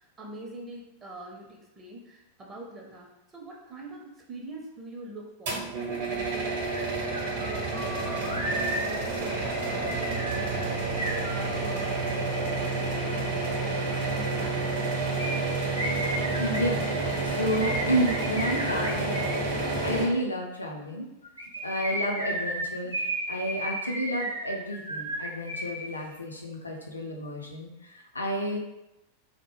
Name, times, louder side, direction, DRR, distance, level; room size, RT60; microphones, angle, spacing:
voice 1, 0.0-14.6, right 2 dB, 20° right, -1 dB, 0.5 m, -44 dB
sound 1, 5.5-20.1, right 3 dB, 55° right, 0.8 m, -29 dB
sound 2, 6.7-6.8 7.1-11.9 15.2-19.4 21.2-25.9 26.1-26.2, right 1 dB, 85° right, 0.4 m, -34 dB
voice 2, 16.4-19.3 19.8-21.1 21.6-22.9 23.3-28.6, equal, 80° left, 0 dB, 0.4 m, -31 dB
2.1 x 2.0 x 3.0 m, 0.91 s
figure-of-eight pair, 90°, 0 cm